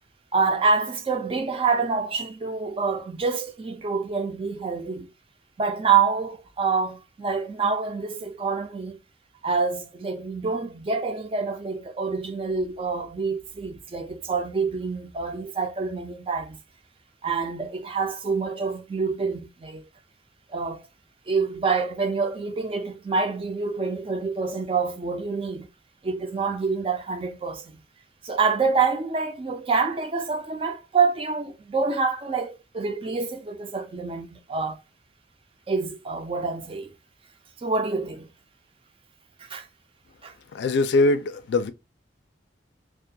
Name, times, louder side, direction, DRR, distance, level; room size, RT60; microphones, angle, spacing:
voice 1, 0.3-5.1 5.6-9.0 9.4-16.6 17.2-19.8 20.5-20.8 21.3-25.7 26.0-27.8 28.2-34.8 35.7-36.9 37.6-38.3 39.4-39.7 40.2-40.3, right 4 dB, 30° right, 0.4 m, -26 dB
voice 2, 40.5-41.7, left 2 dB, 75° left, 0.4 m, -22 dB
2.4 x 2.2 x 2.6 m
head